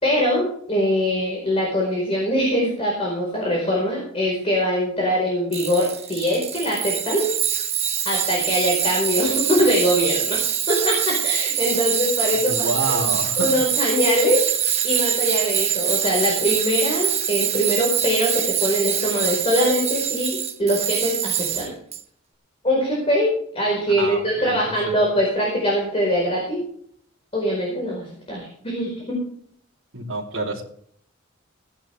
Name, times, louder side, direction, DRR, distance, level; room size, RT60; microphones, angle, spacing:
voice 1, 0.0-7.2 8.0-10.4 10.7-13.0 13.4-14.4 14.8-21.7 22.6-26.6 27.3-29.2, equal, 30° left, -2 dB, 4.7 m, -22 dB
Tools, 5.5-22.0, right 9 dB, 30° right, 1.2 m, -24 dB
voice 2, 12.3-13.6 24.0-24.6 24.9-25.0 29.9-30.6, right 2 dB, 75° right, -8 dB, 3.1 m, -28 dB
18.0 x 10.5 x 3.5 m, 0.63 s
head